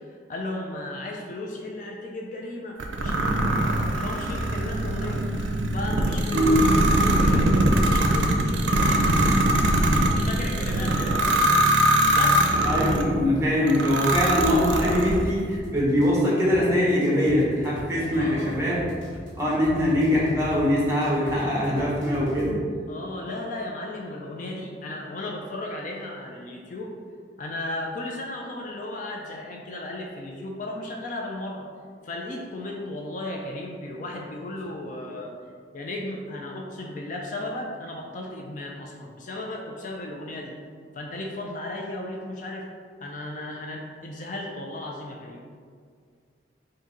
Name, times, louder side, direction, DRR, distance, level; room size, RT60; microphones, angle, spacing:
voice 1, 0.0-5.3 5.7-12.5 18.1-18.7 22.9-26.9 27.4-31.7 32.0-35.3 35.7-40.6 40.9-42.7 43.0-45.4, left 1 dB, 45° left, 0 dB, 0.4 m, -35 dB
sound 1, 2.8-13.1 13.7-15.3, right 1 dB, 90° right, 0.4 m, -22 dB
voice 2, 12.6-18.7 19.4-22.5, left 1 dB, 15° right, -6 dB, 1.0 m, -22 dB
sound 2, 14.5-22.5, equal, 80° left, 1.2 m, -40 dB
3.7 x 2.6 x 4.1 m, 2.1 s
head